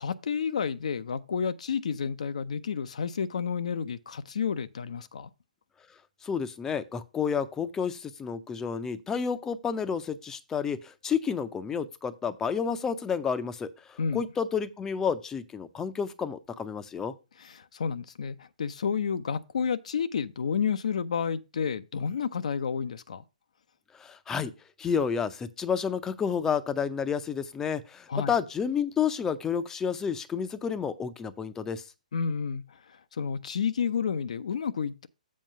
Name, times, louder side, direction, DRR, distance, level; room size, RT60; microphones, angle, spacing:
voice 1, 0.0-5.3 14.0-14.2 17.4-23.2 28.1-28.3 32.1-35.1, left 6 dB, 60° left, 0.5 m, -30 dB
voice 2, 6.2-17.1 23.9-24.5 24.8-31.8, left 6 dB, 10° left, 0.6 m, -30 dB
7.5 x 4.5 x 5.5 m
figure-of-eight pair, 125°, 4 cm